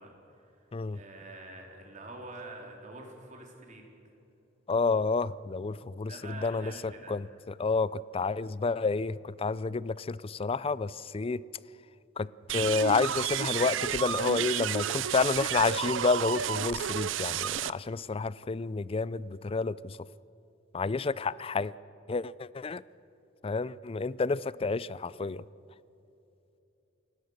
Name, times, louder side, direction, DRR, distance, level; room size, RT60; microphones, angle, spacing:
voice 1, 0.0-3.8 6.1-7.1, right 2 dB, 40° right, 0 dB, 3.8 m, -46 dB
voice 2, 4.7-11.4 12.2-20.0 20.7-21.7 22.1-22.8 23.4-25.4, left 4 dB, 30° left, 19 dB, 0.4 m, -30 dB
sound 1, 12.5-17.7, right 9 dB, 70° right, 0.5 m, -31 dB
29.0 x 17.5 x 6.6 m, 2.9 s
head